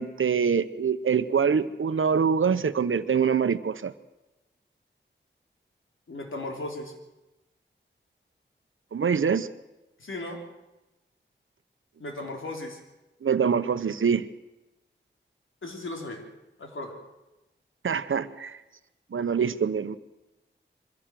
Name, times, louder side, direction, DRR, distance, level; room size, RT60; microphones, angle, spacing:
voice 1, 0.0-3.9 8.9-9.5 13.2-14.3 17.8-18.6 19.1-20.0, right 6 dB, 85° right, 13 dB, 0.9 m, -24 dB
voice 2, 6.1-6.9 10.0-10.4 12.0-12.8 15.6-16.2 16.6-16.9, left 2 dB, 85° left, 2 dB, 3.7 m, -36 dB
23.5 x 16.0 x 7.6 m, 1.0 s
wide cardioid pair, 85°, 20 cm